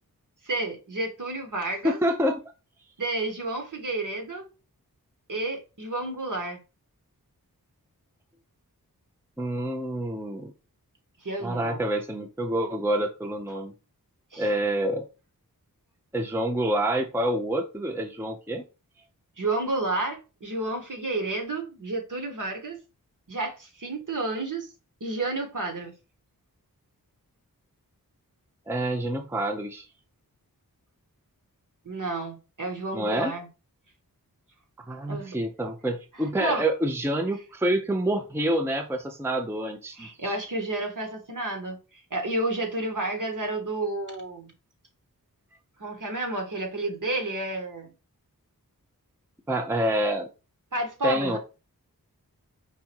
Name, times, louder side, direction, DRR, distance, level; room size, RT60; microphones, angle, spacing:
voice 1, 0.4-2.0 3.0-4.5 5.3-6.6 11.2-11.8 14.3-14.5 19.4-22.8 23.3-24.7 25.0-25.9 31.8-33.5 35.1-35.4 36.4-36.6 40.0-44.5 45.8-47.9 50.7-51.4, right 2 dB, 60° right, 1.5 m, -31 dB
voice 2, 1.8-2.4 9.4-10.5 11.4-13.7 14.4-15.1 16.1-18.6 28.7-29.9 32.9-33.3 34.9-40.4 49.5-50.3 51.0-51.4, right 1 dB, 5° right, 0.6 m, -27 dB
4.7 x 2.6 x 4.3 m
wide cardioid pair, 70°, 36 cm